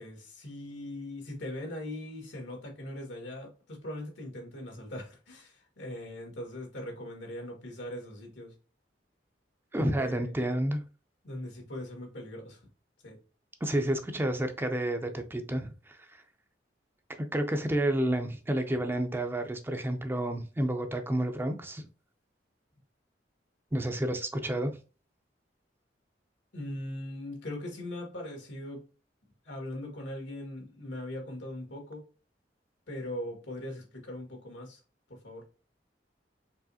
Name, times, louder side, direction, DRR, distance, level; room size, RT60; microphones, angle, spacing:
voice 1, 0.0-8.5 9.7-10.4 11.2-12.7 13.0-13.2 26.5-28.8 29.4-32.0 32.9-34.8 35.1-35.4, left 1 dB, 85° left, 1.8 m, -40 dB
voice 2, 9.7-10.8 13.6-16.2 17.2-21.9 23.7-24.8, right 1 dB, 15° right, 0.4 m, -30 dB
4.8 x 3.0 x 2.7 m
head